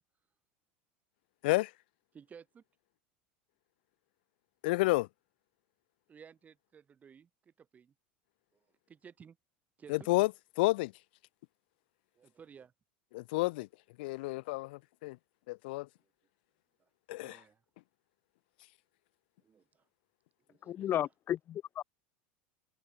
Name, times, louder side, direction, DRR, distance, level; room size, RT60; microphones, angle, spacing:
voice 1, 2.1-2.6 6.1-7.9 8.9-9.4 9.8-10.1 12.2-12.7 17.2-17.6 19.4-19.8 20.5-21.0, right 7 dB, 30° right, 6.1 m, -55 dB
voice 2, 4.6-5.1 9.9-10.3 10.6-10.9 13.1-13.7 14.0-15.2 15.5-15.9 17.1-17.4, left 22 dB, 75° left, 0.9 m, -30 dB
voice 3, 20.7-21.8, left 11 dB, 40° left, 1.0 m, -34 dB
supercardioid pair, 105°, 5 cm